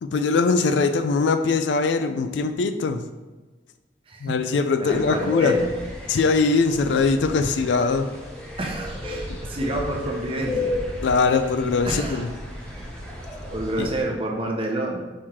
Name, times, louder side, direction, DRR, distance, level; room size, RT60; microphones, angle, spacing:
voice 1, 0.0-3.0 4.2-5.6 6.1-8.1 11.0-12.3 13.8-13.9, left 4 dB, 80° left, 9 dB, 0.3 m, -21 dB
voice 2, 4.1-4.4 4.8-5.7 8.6-10.8 11.9-12.2 13.5-15.0, right 1 dB, 30° right, 0 dB, 0.7 m, -29 dB
sound 1, 4.9-14.0, left 2 dB, 10° left, 0.9 m, -32 dB
4.5 x 3.0 x 3.6 m, 1.2 s
head